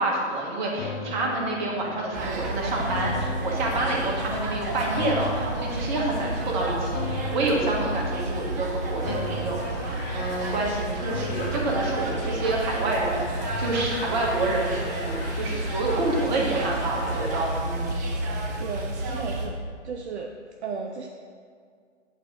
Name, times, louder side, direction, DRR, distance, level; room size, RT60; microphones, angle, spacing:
voice 1, 0.0-18.0, right 2 dB, 40° right, -2 dB, 1.5 m, -28 dB
sound 1, 0.8-16.1 16.5-16.6, left 3 dB, 30° left, 0.8 m, -38 dB
sound 2, 2.1-19.5, right 1 dB, 15° right, 0.4 m, -31 dB
Crowd, 9.2-17.5, left 2 dB, 50° left, 1.6 m, -42 dB
voice 2, 18.6-19.6 19.8-20.3 20.6-21.1, right 5 dB, 65° right, 3 dB, 0.6 m, -34 dB
8.6 x 3.7 x 5.0 m, 2.1 s
figure-of-eight pair, 120°, 36 cm